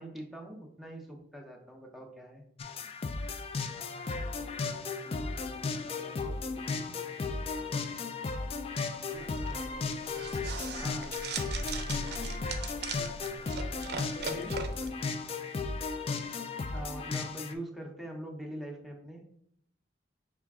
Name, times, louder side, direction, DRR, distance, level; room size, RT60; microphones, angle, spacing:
voice 1, 0.0-2.4 9.5-9.9 10.8-11.2 16.7-19.3, right 1 dB, ahead, 1 dB, 0.6 m, -43 dB
sound 1, 2.6-17.5, left 4 dB, 35° left, 0.3 m, -35 dB
voice 2, 3.7-7.8 9.1-9.4 11.5-13.8 14.1-14.6, left 1 dB, 50° left, 1 dB, 0.8 m, -50 dB
sound 2, 9.1-14.9, right 4 dB, 60° right, 0.5 m, -39 dB
5.6 x 2.4 x 3.5 m, 0.68 s
head